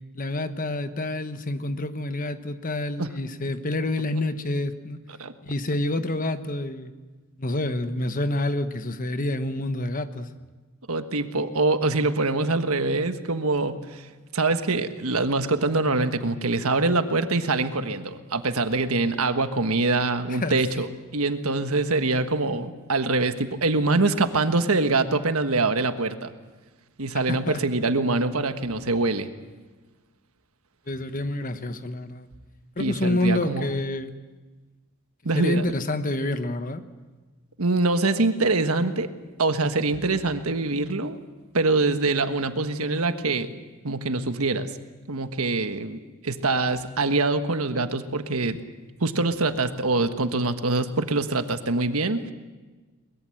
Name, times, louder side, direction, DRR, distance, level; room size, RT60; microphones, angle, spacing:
voice 1, 0.1-5.0 5.4-6.9 7.4-10.3 20.3-20.6 27.3-27.6 30.9-32.3 32.8-34.1 35.3-36.8, left 1 dB, 35° left, 9 dB, 1.2 m, -28 dB
voice 2, 10.9-14.1 14.3-26.3 27.0-29.3 32.8-33.7 35.2-35.7 37.6-39.1 39.4-41.2 41.5-43.5 43.8-44.7 45.1-48.6 49.0-52.3, right 3 dB, 75° right, 8 dB, 1.4 m, -24 dB
23.0 x 21.0 x 7.8 m, 1.3 s
head